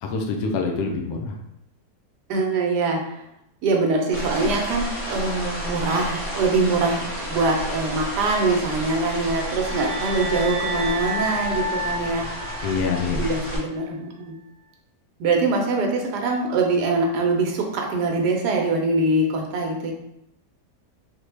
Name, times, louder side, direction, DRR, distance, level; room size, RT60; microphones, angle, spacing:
voice 1, 0.0-1.4 12.6-13.2, left 4 dB, 85° left, 2 dB, 1.2 m, -25 dB
voice 2, 2.3-3.2 3.6-12.3 13.2-14.3 15.2-19.9, right 3 dB, 85° right, 1 dB, 1.3 m, -23 dB
sound 1, 4.1-13.6, equal, 10° right, 0.6 m, -31 dB
sound 2, 9.0-13.3, equal, 70° right, 0.5 m, -31 dB
4.0 x 2.2 x 3.2 m, 0.82 s
omnidirectional pair, 1.7 m